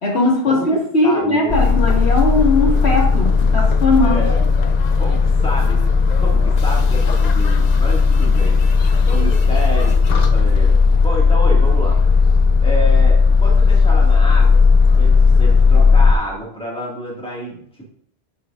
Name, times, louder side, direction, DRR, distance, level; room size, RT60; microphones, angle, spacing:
voice 1, 0.0-4.2, left 2 dB, 85° left, -2 dB, 2.2 m, -18 dB
voice 2, 1.0-1.6 4.0-4.4 5.0-8.6 9.1-12.0 12.2-14.6 14.9-17.9, right 1 dB, 5° left, -4 dB, 1.9 m, -29 dB
sound 1, 1.5-16.1, left 4 dB, 50° left, 0.6 m, -14 dB
9.1 x 6.8 x 2.5 m, 0.66 s
omnidirectional pair, 1.1 m